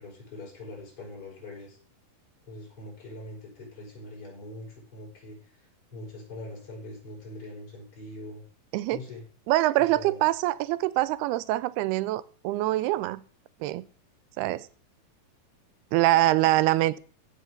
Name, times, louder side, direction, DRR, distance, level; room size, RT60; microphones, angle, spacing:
voice 1, 0.0-1.8 2.5-8.4 8.9-9.2 9.8-10.2, left 2 dB, 35° left, -3 dB, 6.5 m, -43 dB
voice 2, 9.5-13.2 13.6-13.8 14.4-14.7 15.9-17.0, right 16 dB, 90° right, 17 dB, 2.7 m, -24 dB
15.0 x 5.4 x 6.5 m, 0.41 s
omnidirectional pair, 4.5 m